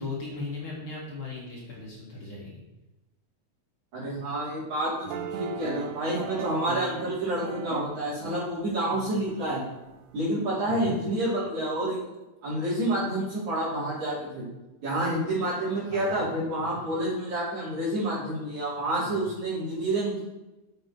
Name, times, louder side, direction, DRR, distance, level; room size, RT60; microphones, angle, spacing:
voice 1, 0.0-2.5 10.7-11.0 15.9-16.2 16.6-16.7, left 3 dB, 45° left, -5 dB, 2.4 m, -36 dB
voice 2, 3.9-9.6 10.1-12.0 12.4-14.5 14.8-20.2, right 1 dB, 65° right, -10 dB, 5.2 m, -29 dB
sound 1, 5.0-10.5, right 8 dB, 80° right, 2.2 m, -39 dB
8.8 x 7.5 x 4.6 m, 1.0 s
omnidirectional pair, 3.6 m